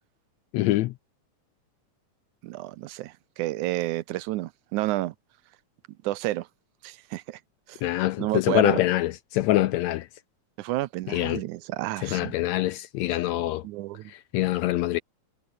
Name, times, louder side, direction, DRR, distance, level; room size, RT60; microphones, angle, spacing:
voice 1, 0.5-0.9 7.8-10.1 11.1-11.4 12.0-13.6 14.1-15.0, left 16 dB, 75° left, 1.7 m, -25 dB
voice 2, 2.4-5.1 6.0-6.5 6.8-7.4 7.7-7.8 8.2-8.8 10.6-12.3 13.6-14.1, right 17 dB, 80° right, 2.0 m, -30 dB
omnidirectional pair, 3.6 m